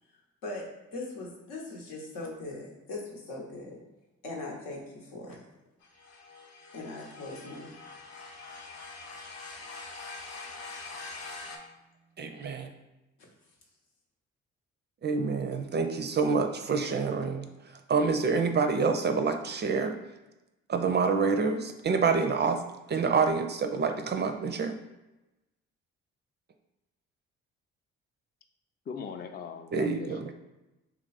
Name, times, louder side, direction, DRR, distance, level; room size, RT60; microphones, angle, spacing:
voice 1, 0.9-3.8 4.2-5.4 6.7-7.8, left 2 dB, 80° left, -2 dB, 0.9 m, -40 dB
sound 1, 5.8-11.6, left 3 dB, 55° left, 0.8 m, -44 dB
voice 2, 12.2-12.7 15.0-17.4 17.9-20.0 20.7-22.6 22.9-24.8 29.7-30.3, right 5 dB, 35° right, 6 dB, 0.4 m, -27 dB
voice 3, 28.9-30.3, left 6 dB, 30° left, 6 dB, 0.4 m, -40 dB
2.9 x 2.4 x 4.0 m, 1.0 s
hypercardioid pair, 50°, 32 cm